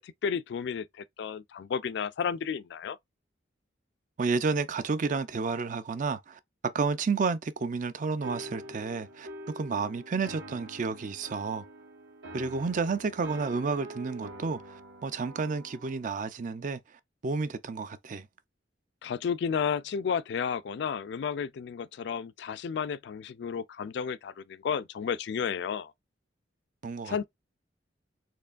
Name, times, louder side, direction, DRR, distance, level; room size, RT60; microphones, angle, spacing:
voice 1, 0.0-3.0 19.0-25.9 27.0-27.2, left 6 dB, 65° left, 0.3 m, -32 dB
voice 2, 4.2-9.3 9.6-11.7 12.3-16.8 17.2-18.3 26.8-27.2, right 4 dB, 45° right, 0.4 m, -31 dB
sound 1, 8.2-16.0, right 1 dB, 70° right, 1.7 m, -45 dB
4.4 x 3.1 x 2.4 m
head